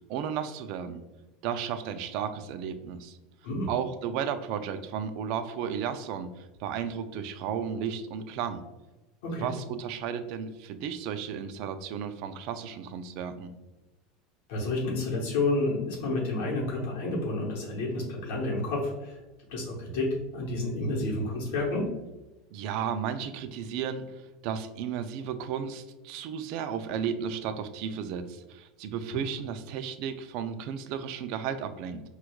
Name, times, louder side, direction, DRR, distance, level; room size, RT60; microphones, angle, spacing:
voice 1, 0.1-1.0 1.4-3.2 3.7-8.6 9.4-13.5 22.5-24.1 24.4-32.0, right 8 dB, 60° right, 10 dB, 0.3 m, -34 dB
voice 2, 14.5-19.2 19.5-21.9 29.1-29.2, left 2 dB, 80° left, -2 dB, 0.9 m, -30 dB
4.5 x 2.3 x 2.2 m, 1.1 s
supercardioid pair, 130°, 0 cm